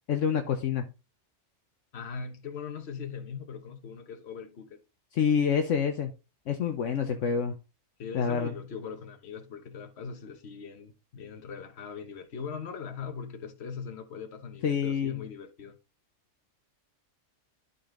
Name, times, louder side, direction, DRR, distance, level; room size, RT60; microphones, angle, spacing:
voice 1, 0.1-0.9 5.1-6.1 6.5-7.6 8.1-8.5 14.6-15.2, left 7 dB, 70° left, 1.1 m, -27 dB
voice 2, 1.9-4.8 8.0-15.8, left 6 dB, 55° left, 1.3 m, -40 dB
12.0 x 4.3 x 3.7 m
omnidirectional pair, 1.4 m